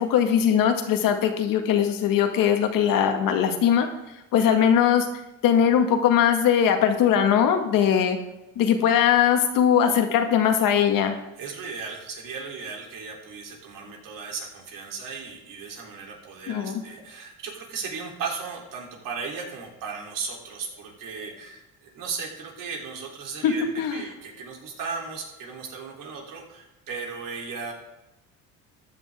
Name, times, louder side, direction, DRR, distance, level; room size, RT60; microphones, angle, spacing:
voice 1, 0.0-3.9 4.3-5.1 5.4-8.2 8.6-11.2 16.5-16.7 23.4-23.9, left 8 dB, 70° left, 5 dB, 1.8 m, -20 dB
voice 2, 4.3-4.6 11.4-27.7, right 5 dB, 65° right, 0 dB, 3.4 m, -36 dB
14.5 x 10.0 x 3.6 m, 0.94 s
cardioid pair, 120°, 35 cm